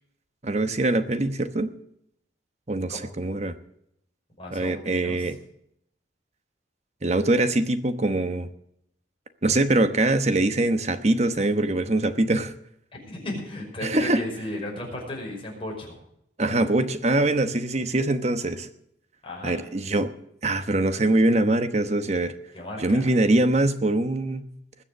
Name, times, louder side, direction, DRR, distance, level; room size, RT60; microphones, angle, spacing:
voice 1, 0.4-1.7 2.7-3.5 4.5-5.4 7.0-8.5 9.4-12.5 13.8-14.2 16.4-18.7 19.4-20.1 20.4-22.3 22.8-24.4, right 2 dB, 35° right, 10 dB, 1.0 m, -23 dB
voice 2, 4.4-5.3 13.0-16.0 19.2-19.6 22.5-23.0, left 1 dB, 30° left, -1 dB, 5.4 m, -35 dB
20.5 x 7.2 x 6.6 m, 0.74 s
head